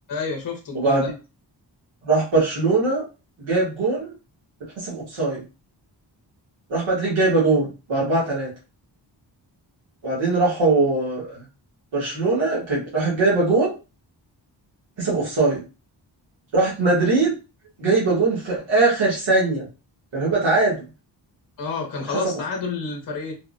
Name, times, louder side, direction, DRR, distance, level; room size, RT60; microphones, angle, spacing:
voice 1, 0.1-1.1 21.6-23.3, left 4 dB, 45° left, 2 dB, 0.7 m, -29 dB
voice 2, 0.7-1.1 2.0-3.0 3.4-4.1 4.8-5.4 6.7-8.5 10.0-11.4 11.9-13.7 15.0-15.6 16.5-17.4 17.8-19.7 20.1-20.8 22.1-22.3, right 3 dB, 85° right, -5 dB, 1.3 m, -21 dB
3.4 x 2.0 x 2.4 m, 0.30 s
wide cardioid pair, 160°, 45 cm